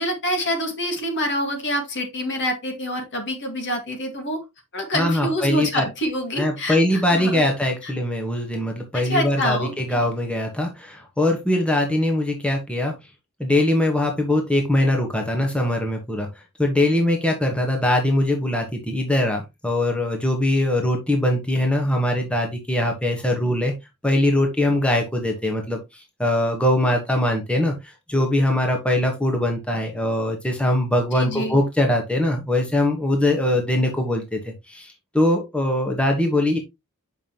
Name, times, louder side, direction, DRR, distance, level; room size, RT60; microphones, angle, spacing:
voice 1, 0.0-4.4 4.7-7.5 7.8-7.9 8.9-10.1 31.1-31.6, equal, 55° left, 1.9 m, -26 dB
voice 2, 4.9-5.8 6.4-12.9 13.4-16.3 16.6-23.7 24.0-25.8 26.2-27.7 28.1-36.6, left 1 dB, 5° left, 1.2 m, -22 dB
7.2 x 5.4 x 2.9 m
head